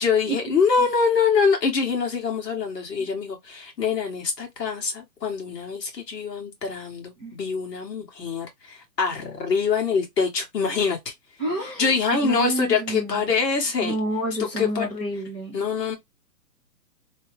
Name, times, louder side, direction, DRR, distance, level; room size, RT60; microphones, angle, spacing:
voice 1, 0.0-11.1 11.6-13.9 14.4-14.9 15.5-16.0, left 5 dB, 85° left, 1.6 m, -24 dB
voice 2, 11.4-11.9 12.2-13.2 13.8-15.5, right 1 dB, 5° left, 0.5 m, -29 dB
3.1 x 2.0 x 3.0 m
hypercardioid pair, 155°, 48 cm